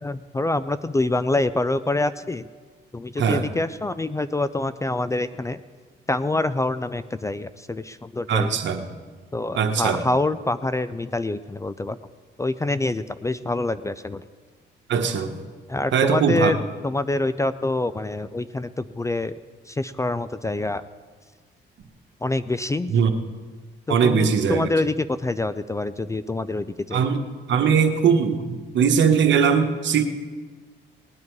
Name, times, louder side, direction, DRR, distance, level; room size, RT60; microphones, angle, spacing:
voice 1, 0.0-2.5 2.9-5.6 6.1-8.6 9.3-12.0 12.4-14.2 15.7-16.6 16.8-19.3 19.7-20.8 22.2-22.9 23.9-27.0, left 2 dB, 15° left, 13 dB, 0.4 m, -26 dB
voice 2, 8.3-8.9 9.5-10.0 14.9-15.4 15.9-16.5 22.9-23.1 23.9-24.7 26.9-27.2 27.5-30.0, right 6 dB, 65° right, 5 dB, 1.3 m, -20 dB
19.0 x 9.7 x 4.7 m, 1.5 s
cardioid pair, 90°, 20 cm